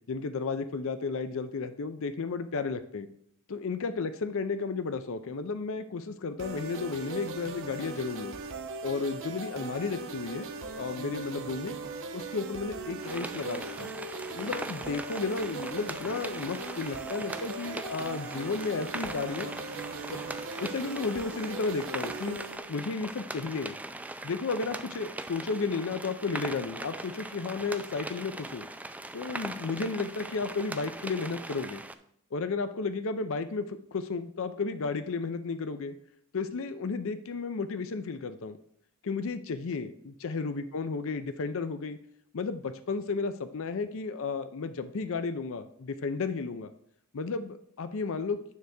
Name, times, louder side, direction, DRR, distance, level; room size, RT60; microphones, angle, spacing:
voice 1, 0.1-3.1 3.5-8.4 8.8-10.5 10.8-11.8 12.1-13.9 14.3-19.5 20.1-20.2 20.6-22.4 22.7-23.8 24.2-28.7 29.1-31.8 32.3-35.9 36.3-38.6 39.0-42.0 42.3-46.7 47.1-48.4, left 4 dB, 60° left, 11 dB, 0.5 m, -33 dB
sound 1, 6.4-22.6, right 3 dB, 60° right, 0.9 m, -39 dB
sound 2, 13.0-31.9, right 2 dB, 5° right, 0.3 m, -40 dB
9.4 x 3.4 x 6.4 m, 0.68 s
head